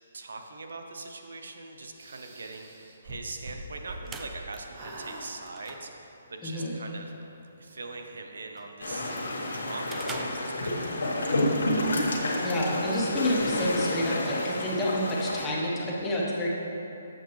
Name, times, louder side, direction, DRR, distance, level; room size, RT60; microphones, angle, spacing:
voice 1, 0.0-7.1 7.6-12.2, right 3 dB, 80° right, 4 dB, 0.7 m, -42 dB
sound 1, 1.9-4.4 4.7-5.3, right 1 dB, 30° right, 0.8 m, -43 dB
sound 2, 3.7-11.1, right 3 dB, 10° right, 0.3 m, -48 dB
voice 2, 6.4-6.8 12.4-16.5, equal, 10° left, -5 dB, 0.9 m, -28 dB
sound 3, 8.8-15.5, left 1 dB, 85° left, 1.3 m, -29 dB
7.7 x 7.2 x 3.1 m, 2.9 s
hypercardioid pair, 165°, 0 cm